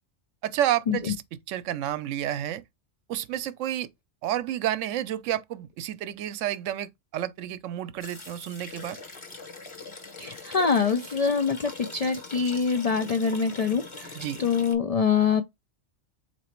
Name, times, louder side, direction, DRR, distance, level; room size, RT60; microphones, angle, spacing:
voice 1, 0.4-1.2 1.5-2.6 3.1-3.9 4.2-9.0 14.1-14.4, right 12 dB, 90° right, 0.9 m, -30 dB
sound 1, 8.0-14.7, left 3 dB, 25° left, 0.9 m, -42 dB
voice 2, 10.2-15.4, left 6 dB, 65° left, 0.3 m, -25 dB
4.0 x 3.0 x 4.3 m
omnidirectional pair, 1.2 m